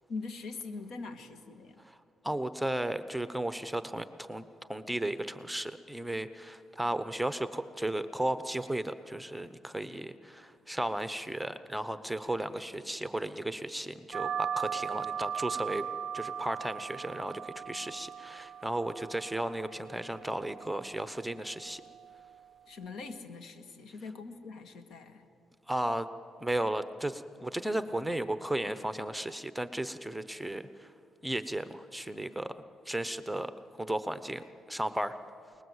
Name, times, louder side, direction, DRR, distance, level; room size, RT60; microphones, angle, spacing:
voice 1, 0.1-1.8 22.7-25.3, left 4 dB, 75° left, 8 dB, 1.9 m, -42 dB
voice 2, 2.2-15.8 16.1-21.8 25.7-26.1 26.4-30.9 31.2-32.5 32.9-33.5 33.8-35.2, right 1 dB, ahead, 11 dB, 0.9 m, -34 dB
sound 1, 14.1-23.2, right 8 dB, 60° right, 0.5 m, -39 dB
28.0 x 20.0 x 8.1 m, 2.5 s
cardioid pair, 90°, 0 cm